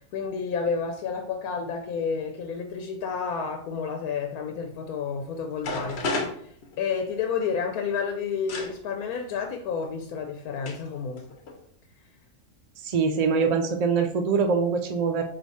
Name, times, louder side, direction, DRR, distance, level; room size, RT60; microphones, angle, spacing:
voice 1, 0.1-6.1 6.8-11.3, left 6 dB, 85° left, 4 dB, 1.1 m, -30 dB
sound 1, 5.2-5.3 5.6-7.2 8.5-8.7 9.8-9.9 10.7-10.9 11.2-11.6, left 2 dB, 55° left, 0.9 m, -31 dB
voice 2, 12.8-15.2, right 5 dB, 60° right, 4 dB, 0.4 m, -23 dB
4.6 x 2.7 x 4.1 m, 0.62 s
omnidirectional pair, 1.5 m